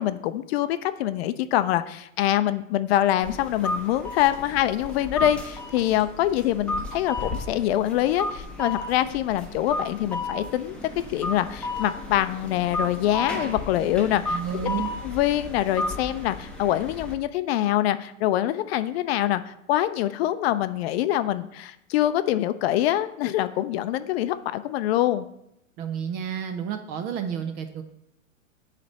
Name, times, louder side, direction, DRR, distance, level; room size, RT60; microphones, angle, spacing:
voice 1, 0.0-10.8 11.1-14.4 15.0-25.3, left 13 dB, 50° left, 12 dB, 0.5 m, -25 dB
sound 1, 3.2-17.1, left 2 dB, 5° left, 1.1 m, -33 dB
voice 2, 14.3-14.9 25.8-27.8, right 8 dB, 25° right, 7 dB, 0.4 m, -30 dB
6.9 x 3.3 x 6.2 m, 0.80 s
hypercardioid pair, 115°, 40 cm